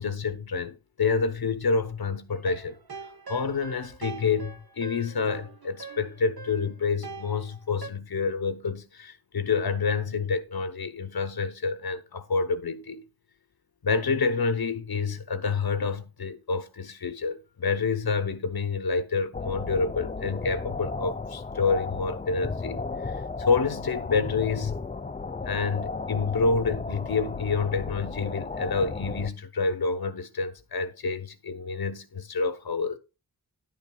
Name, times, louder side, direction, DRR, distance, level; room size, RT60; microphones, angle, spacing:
voice 1, 0.0-2.8 3.3-13.0 13.8-24.9 25.4-33.0, left 4 dB, 85° left, 0.9 m, -28 dB
sound 1, 2.3-7.9, right 4 dB, 80° right, 1.1 m, -43 dB
sound 2, 19.3-29.3, left 4 dB, 20° left, 0.4 m, -34 dB
10.5 x 9.2 x 2.3 m
wide cardioid pair, 55°, 36 cm